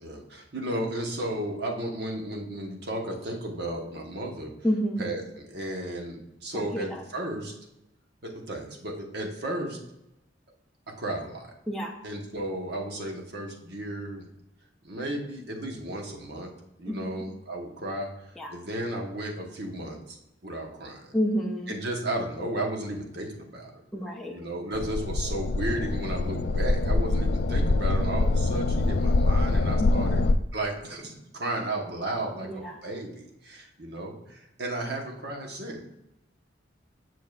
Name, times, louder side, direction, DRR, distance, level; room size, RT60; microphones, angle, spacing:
voice 1, 0.0-4.5 5.0-7.5 8.2-9.8 11.0-11.5 12.0-14.3 14.8-16.5 16.8-20.2 20.4-21.1 21.7-23.7 24.3-30.2 30.5-35.8, right 1 dB, 60° right, 1 dB, 1.1 m, -34 dB
voice 2, 4.6-5.0 6.5-7.0 11.7-11.9 16.9-17.2 18.4-18.6 21.1-21.7 23.9-24.3 29.8-30.3 32.4-32.8, equal, ahead, -1 dB, 0.5 m, -30 dB
sound 1, 24.7-30.3, left 2 dB, 55° left, 0.3 m, -24 dB
7.2 x 6.0 x 2.4 m, 0.88 s
head